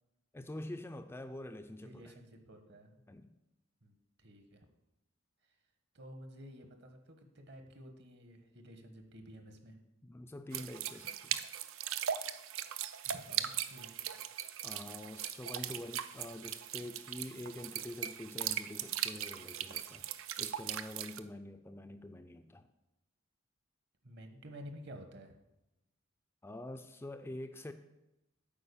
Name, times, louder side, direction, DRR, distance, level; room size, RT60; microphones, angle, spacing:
voice 1, 0.3-2.1 3.1-3.3 10.0-11.4 14.6-20.0 20.4-22.7 26.4-27.7, left 1 dB, 10° left, 7 dB, 0.3 m, -46 dB
voice 2, 1.8-2.9 3.8-4.7 5.9-9.8 13.0-14.3 15.7-15.8 24.0-25.3, equal, 55° right, 6 dB, 1.2 m, -52 dB
sound 1, 10.5-21.2, right 10 dB, 80° right, 0.5 m, -39 dB
8.8 x 4.7 x 6.9 m, 0.95 s
head